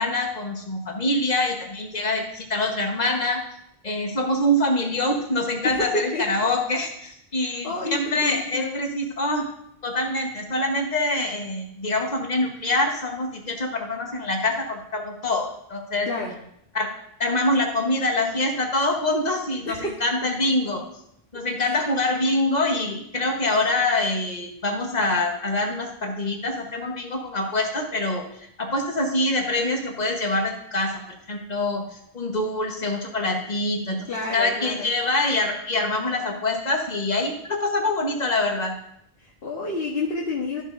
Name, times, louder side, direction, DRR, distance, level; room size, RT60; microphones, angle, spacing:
voice 1, 0.0-3.4 3.8-9.5 9.8-16.1 16.7-16.9 17.2-20.9 21.3-31.0 31.3-34.1 34.3-38.8, left 2 dB, 45° left, 2 dB, 1.3 m, -25 dB
voice 2, 5.6-6.2 7.4-8.8 16.0-16.3 19.7-19.9 21.6-21.8 34.1-34.9 39.2-40.6, left 3 dB, 65° left, -3 dB, 1.4 m, -29 dB
13.0 x 6.4 x 2.6 m, 0.74 s
omnidirectional pair, 1.1 m